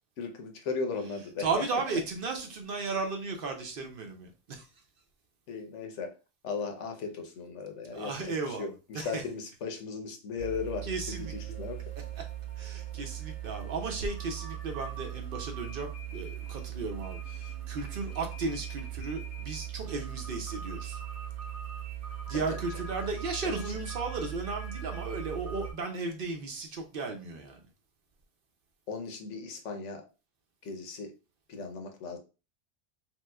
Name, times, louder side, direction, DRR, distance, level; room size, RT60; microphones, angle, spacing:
voice 1, 0.2-1.8 5.5-6.1 6.4-11.8 22.3-22.6 23.4-23.7 28.9-30.1 30.6-31.1 31.5-32.2, left 5 dB, 90° left, 4 dB, 1.0 m, -37 dB
voice 2, 1.4-4.6 7.9-9.2 10.9-11.3 12.2-12.3 12.6-21.0 22.3-27.6, right 4 dB, 60° right, 4 dB, 0.7 m, -35 dB
sound 1, 10.4-25.7, right 10 dB, 80° right, 1.1 m, -39 dB
3.1 x 2.9 x 2.2 m, 0.31 s
omnidirectional pair, 1.2 m